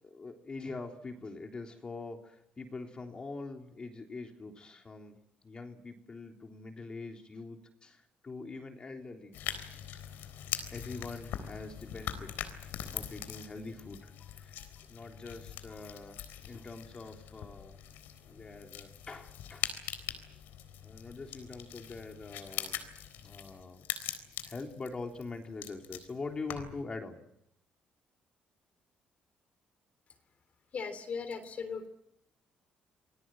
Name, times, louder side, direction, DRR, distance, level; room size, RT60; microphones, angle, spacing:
voice 1, 0.0-5.2 5.4-9.4 10.7-17.8 18.3-19.7 20.8-22.8 23.2-23.9 24.4-27.2, left 3 dB, 30° left, 3 dB, 3.5 m, -44 dB
sound 1, 9.3-26.8, left 10 dB, 85° left, 3.8 m, -42 dB
voice 2, 30.7-31.9, left 5 dB, 50° left, 9 dB, 3.4 m, -38 dB
27.5 x 20.0 x 7.8 m, 0.79 s
cardioid pair, 105°, 3 cm